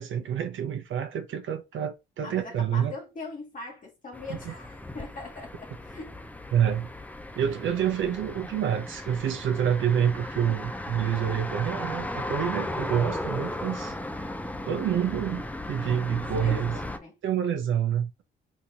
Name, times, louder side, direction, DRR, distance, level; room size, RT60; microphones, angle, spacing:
voice 1, 0.0-3.0 4.5-4.6 6.5-6.9 7.4-14.3 14.6-16.8 17.2-18.2, right 9 dB, 70° right, 0.6 m, -28 dB
voice 2, 2.2-6.2 12.9-13.1 16.3-17.2, left 3 dB, 40° left, 1.2 m, -41 dB
sound 1, 4.1-17.0, left 1 dB, 5° left, 0.5 m, -36 dB
3.6 x 3.0 x 2.8 m
cardioid pair, 90°, 21 cm